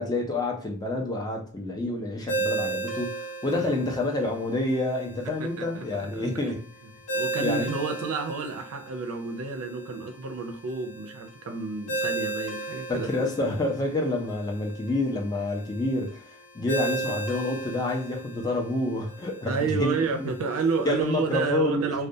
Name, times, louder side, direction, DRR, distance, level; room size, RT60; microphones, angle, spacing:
voice 1, 0.0-6.6 7.4-7.7 12.9-16.2 16.5-20.3 20.8-22.0, left 2 dB, 20° left, 0.4 m, -28 dB
Ringtone, 2.3-21.4, right 2 dB, 75° left, 0.9 m, -36 dB
voice 2, 7.1-13.1 19.4-22.1, right 4 dB, 65° right, 0.4 m, -30 dB
2.3 x 2.2 x 2.6 m
head